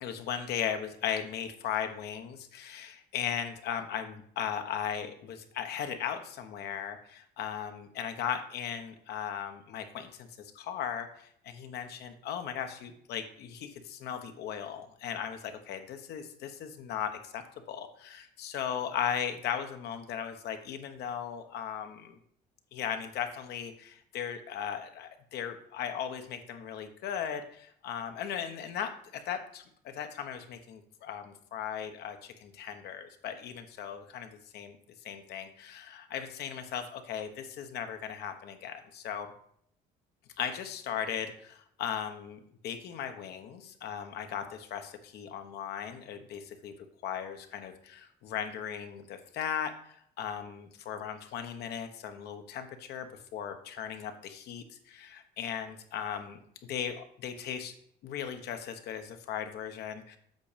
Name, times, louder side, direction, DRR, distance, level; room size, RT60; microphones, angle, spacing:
voice 1, 0.0-17.4 17.7-22.2 22.7-34.8 35.0-39.3 40.4-46.7 47.0-56.4 56.7-57.7 58.0-60.2, left 8 dB, 75° left, 7 dB, 1.2 m, -37 dB
8.1 x 6.0 x 5.1 m, 0.65 s
cardioid pair, 110°, 17 cm